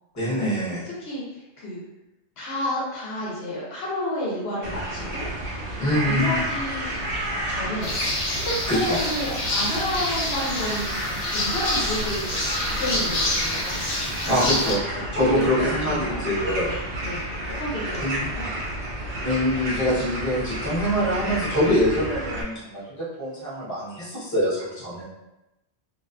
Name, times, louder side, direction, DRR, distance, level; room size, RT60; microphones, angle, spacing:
voice 1, 0.2-0.8 5.8-6.4 8.7-9.0 14.2-16.8 18.0-18.2 19.2-25.0, equal, 20° left, -9 dB, 0.8 m, -24 dB
voice 2, 1.0-1.9 2.4-5.2 5.9-7.0 7.5-7.9 8.3-12.4 12.7-13.8 14.2-14.3 15.1-16.2 17.0-17.2 17.6-18.5, left 1 dB, 70° left, -6 dB, 0.9 m, -31 dB
sound 1, 4.6-22.4, right 1 dB, 65° right, 0.7 m, -31 dB
sound 2, 7.8-14.7, left 1 dB, 50° left, 0.5 m, -28 dB
2.5 x 2.3 x 2.3 m, 0.96 s
omnidirectional pair, 1.1 m